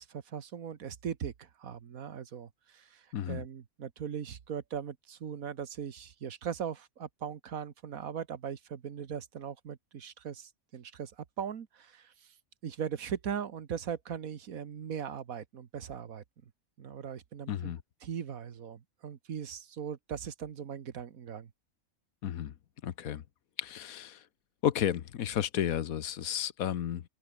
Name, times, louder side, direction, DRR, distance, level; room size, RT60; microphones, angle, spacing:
voice 1, 0.0-11.1 11.4-12.1 12.6-16.2 16.8-17.7 18.0-21.5, right 8 dB, 80° right, 1.7 m, -39 dB
voice 2, 3.1-3.4 17.5-17.8 22.2-22.5 22.8-23.2 23.6-24.2 24.6-27.0, left 10 dB, 80° left, 1.4 m, -32 dB
open air
omnidirectional pair, 1.5 m